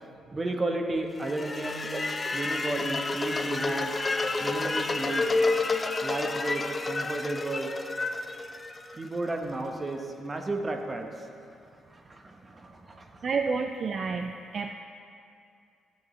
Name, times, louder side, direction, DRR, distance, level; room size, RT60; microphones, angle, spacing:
voice 1, 0.3-4.0 4.4-5.3 6.0-7.7 8.9-11.3 11.9-13.2, right 2 dB, 25° right, 4 dB, 1.0 m, -33 dB
sound 1, 1.2-9.3, left 3 dB, 25° left, 0.5 m, -30 dB
voice 2, 13.2-14.7, right 4 dB, 50° right, 6 dB, 0.4 m, -29 dB
13.5 x 7.8 x 3.2 m, 2.5 s
cardioid pair, 90°, 0 cm